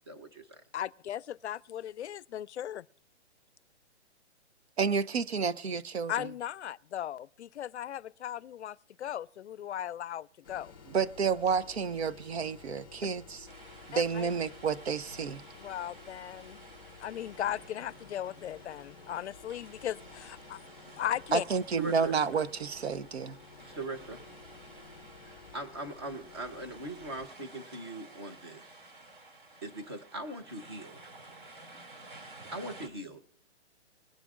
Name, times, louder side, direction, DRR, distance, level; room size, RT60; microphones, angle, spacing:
voice 1, 0.1-0.6 21.8-22.1 23.6-24.2 25.2-28.8 29.6-31.0 32.5-33.2, right 1 dB, 20° right, 0.8 m, -41 dB
voice 2, 0.7-2.9 6.1-10.7 13.0-13.1 13.9-14.3 15.6-16.6 17.0-20.6 21.0-21.4, left 11 dB, 75° left, 0.5 m, -37 dB
voice 3, 4.8-6.3 10.9-13.5 13.9-15.4 21.3-23.4, right 6 dB, 65° right, 0.8 m, -30 dB
sound 1, 10.4-27.3, left 5 dB, 20° left, 0.6 m, -53 dB
sound 2, 13.5-32.9, right 2 dB, 50° right, 2.5 m, -53 dB
21.0 x 10.5 x 2.5 m
hypercardioid pair, 180°, 34 cm